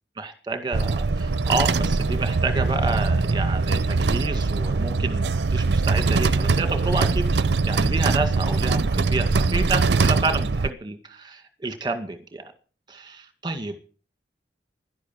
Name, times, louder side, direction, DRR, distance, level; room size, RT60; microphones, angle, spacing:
voice 1, 0.2-12.4 12.9-13.8, right 3 dB, 25° right, 7 dB, 2.1 m, -29 dB
sound 1, 0.7-10.7, right 3 dB, 75° right, 0.6 m, -22 dB
11.5 x 11.5 x 7.4 m, 0.39 s
head